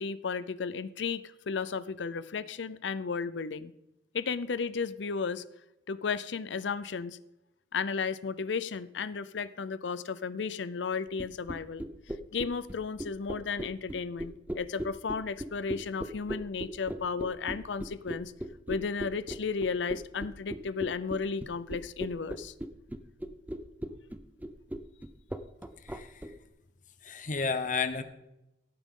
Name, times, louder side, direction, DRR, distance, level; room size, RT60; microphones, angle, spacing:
voice 1, 0.0-3.7 4.1-5.4 5.9-7.2 7.7-11.8 12.3-18.3 18.7-22.5, left 5 dB, 85° left, 15 dB, 0.5 m, -34 dB
sound 1, 11.2-26.3, right 1 dB, 10° right, 0.6 m, -37 dB
voice 2, 25.8-26.2 27.0-28.0, left 4 dB, 45° left, 9 dB, 1.0 m, -32 dB
16.5 x 9.0 x 3.8 m, 0.88 s
head